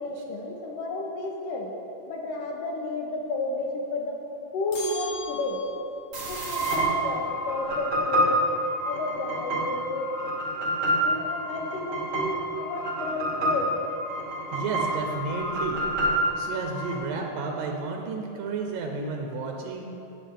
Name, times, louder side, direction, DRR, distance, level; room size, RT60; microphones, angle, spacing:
voice 1, 0.0-1.7 2.1-4.2 4.5-5.6 6.2-8.4 8.8-10.2 11.0-13.7, left 2 dB, 80° left, 0 dB, 2.8 m, -32 dB
sound 1, 4.7-6.1, left 5 dB, 60° left, 1.1 m, -38 dB
sound 2, 6.1-16.9, right 1 dB, 35° right, 2.6 m, -28 dB
voice 2, 14.5-15.8 16.4-19.9, right 4 dB, 85° right, 2 dB, 2.5 m, -32 dB
18.0 x 8.1 x 3.6 m, 2.9 s
omnidirectional pair, 3.9 m